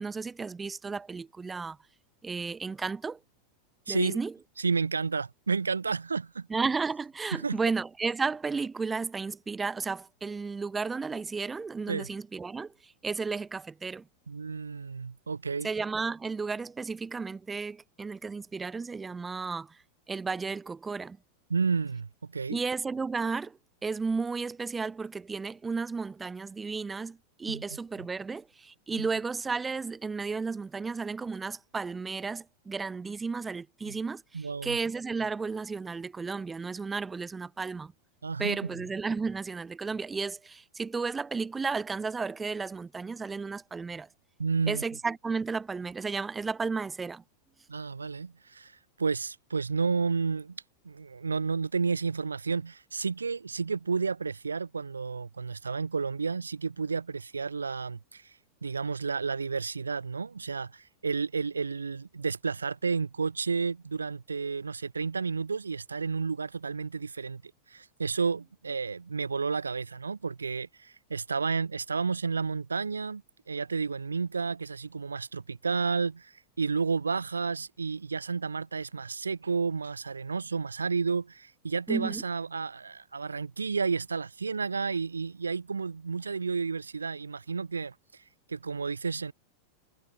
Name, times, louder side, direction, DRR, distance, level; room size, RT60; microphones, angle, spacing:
voice 1, 0.0-1.8 2.2-3.2 3.9-4.3 6.5-14.1 15.6-19.8 20.1-21.2 22.5-37.9 38.4-44.1 44.7-47.2 81.9-82.2, right 4 dB, 15° right, 4.7 m, -33 dB
voice 2, 3.9-4.2 4.6-6.5 7.3-7.6 11.9-12.1 14.3-15.7 21.5-22.6 27.5-27.6 29.0-29.1 33.9-34.0 34.3-34.8 38.2-38.6 44.4-44.8 47.7-48.7 49.0-58.2 58.6-67.4 67.7-73.2 73.5-87.9 88.5-89.3, right 5 dB, 75° right, 2.1 m, -31 dB
figure-of-eight pair, 90°, 0 cm